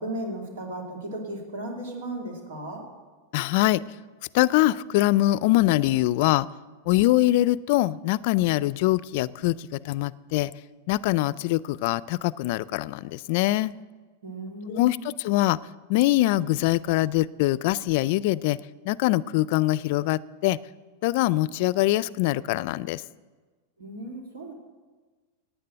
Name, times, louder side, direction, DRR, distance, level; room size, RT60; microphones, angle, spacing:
voice 1, 0.0-2.8 14.2-15.1 23.8-24.5, right 1 dB, 85° right, 1 dB, 2.7 m, -35 dB
voice 2, 3.3-3.8 4.3-6.5 6.9-10.5 10.9-13.7 14.7-15.6 15.9-18.6 18.8-20.6 21.0-23.0, left 17 dB, 60° left, 20 dB, 0.4 m, -23 dB
10.5 x 9.1 x 8.9 m, 1.3 s
hypercardioid pair, 130°, 0 cm